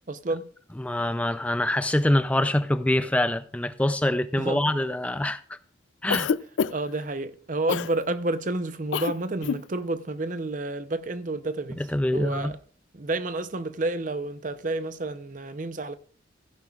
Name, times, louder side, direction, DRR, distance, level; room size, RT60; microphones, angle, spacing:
voice 1, 0.1-0.5 4.4-4.7 6.7-11.8 12.1-12.6 12.9-16.0, right 2 dB, 45° right, 0.7 m, -30 dB
voice 2, 0.8-5.6 6.0-6.3 11.8-12.5, left 1 dB, 5° left, 0.4 m, -25 dB
Cough, 6.1-7.0 7.7-7.9 8.9-9.1 9.4-9.6, left 6 dB, 80° left, 0.4 m, -26 dB
16.0 x 11.0 x 2.4 m
head